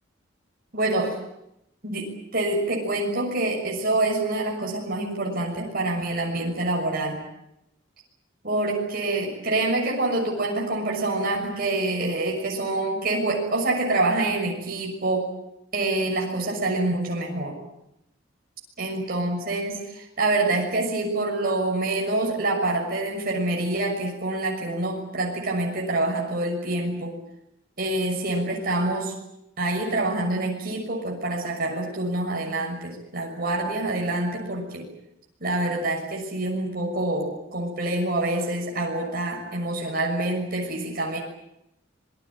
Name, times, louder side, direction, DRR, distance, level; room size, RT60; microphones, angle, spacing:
voice 1, 0.7-1.2 1.8-7.2 8.4-15.3 15.7-17.6 18.8-27.2 27.8-29.1 29.6-34.9 35.4-41.2, right 2 dB, 50° right, 0 dB, 6.4 m, -26 dB
26.5 x 21.5 x 8.7 m, 0.82 s
head